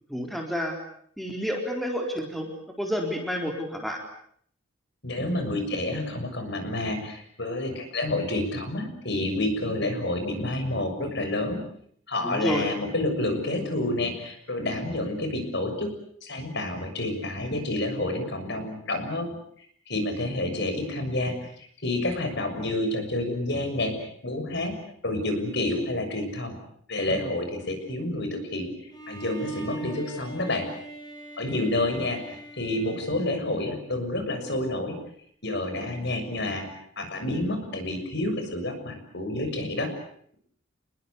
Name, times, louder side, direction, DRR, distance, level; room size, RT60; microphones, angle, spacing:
voice 1, 0.1-0.8 1.2-2.5 2.8-4.0 12.2-12.7, equal, ahead, 1 dB, 4.1 m, -29 dB
voice 2, 5.0-11.6 12.1-15.9 16.2-19.3 19.6-24.8 25.0-26.5 26.9-28.7 29.1-30.7 31.4-35.0 35.4-39.9, left 1 dB, 55° left, 6 dB, 6.8 m, -29 dB
Bowed string instrument, 28.9-33.9, right 2 dB, 20° left, 6.9 m, -41 dB
29.0 x 21.5 x 8.3 m, 0.65 s
head